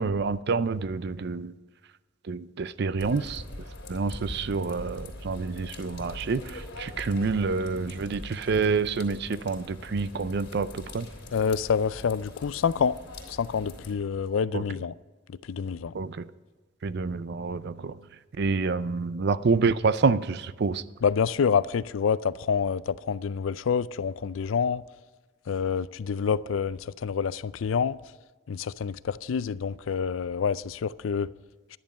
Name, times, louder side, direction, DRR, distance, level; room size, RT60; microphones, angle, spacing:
voice 1, 0.0-1.5 2.3-3.4 3.9-11.1 14.5-14.6 15.9-16.2 16.8-18.0 18.4-20.8, right 4 dB, 55° right, 0.5 m, -27 dB
sound 1, 3.0-13.9, left 1 dB, 60° left, 3.0 m, -42 dB
voice 2, 11.3-13.0 13.3-14.9 15.5-15.9 21.0-24.8 25.5-28.0 28.5-31.3, left 6 dB, 85° left, 0.4 m, -27 dB
11.0 x 10.5 x 5.4 m
head